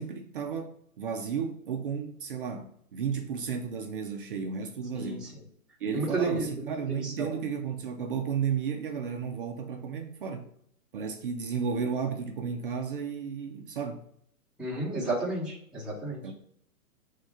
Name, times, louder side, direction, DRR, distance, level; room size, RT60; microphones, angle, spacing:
voice 1, 0.0-5.2 5.8-10.5 10.9-14.0 16.2-16.3, right 6 dB, 35° right, 0.6 m, -33 dB
voice 2, 5.9-7.3 14.6-16.2, right 2 dB, ahead, 1.3 m, -32 dB
5.2 x 3.6 x 5.5 m
hypercardioid pair, 155°, 45 cm